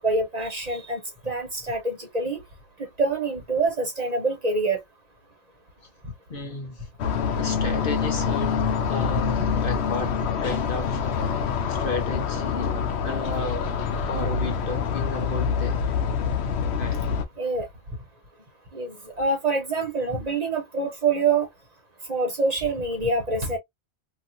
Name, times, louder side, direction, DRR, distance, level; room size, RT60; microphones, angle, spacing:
voice 1, 0.0-2.4 2.8-4.8 17.4-17.7 18.7-21.5 22.1-23.6, right 3 dB, 35° right, 1.1 m, -26 dB
voice 2, 6.3-6.9 7.4-11.4 11.7-12.7 13.0-13.7 14.1-15.8 16.7-17.0, left 3 dB, 55° left, 1.0 m, -33 dB
sound 1, 7.0-17.2, left 6 dB, 70° left, 0.9 m, -26 dB
3.0 x 2.6 x 2.6 m
omnidirectional pair, 1.2 m